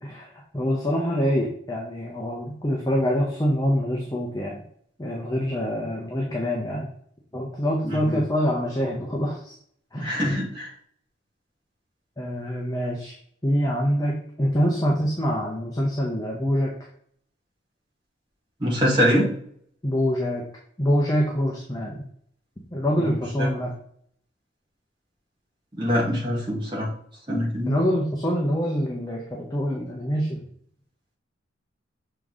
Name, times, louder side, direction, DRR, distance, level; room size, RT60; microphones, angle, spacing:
voice 1, 0.0-4.6 5.0-6.9 7.3-9.5 9.9-10.2 12.2-13.2 13.4-16.7 19.8-20.4 20.8-22.0 22.7-23.7 27.7-30.4, equal, 20° left, -2 dB, 0.8 m, -25 dB
voice 2, 7.8-8.2 10.0-10.7 18.6-19.3 23.4-23.5 25.8-26.9 27.3-27.8, equal, 25° right, -5 dB, 1.8 m, -24 dB
6.7 x 3.7 x 3.8 m, 0.64 s
head